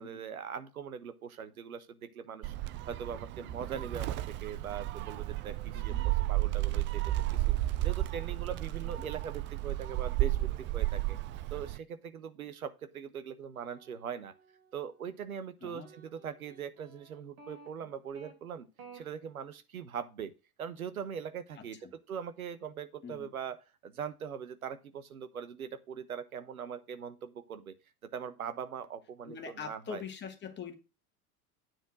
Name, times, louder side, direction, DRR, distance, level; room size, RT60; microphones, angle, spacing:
voice 1, 0.0-2.5 2.9-7.0 7.3-11.2 11.5-14.3 14.7-18.7 18.9-20.3 20.6-21.8 22.1-23.6 23.8-27.7 28.1-30.0, right 7 dB, 70° right, 1.2 m, -41 dB
Gull seagull, 2.4-11.8, right 16 dB, 25° right, 0.5 m, -33 dB
voice 2, 5.8-6.1 9.0-9.1 15.6-15.9 21.6-21.9 23.0-23.3 29.3-30.7, left 6 dB, 25° left, 2.1 m, -43 dB
sound 1, 13.5-15.1 15.8-18.3 18.8-19.0, right 4 dB, 50° right, 3.5 m, -55 dB
9.6 x 4.5 x 6.1 m
figure-of-eight pair, 80°, 44 cm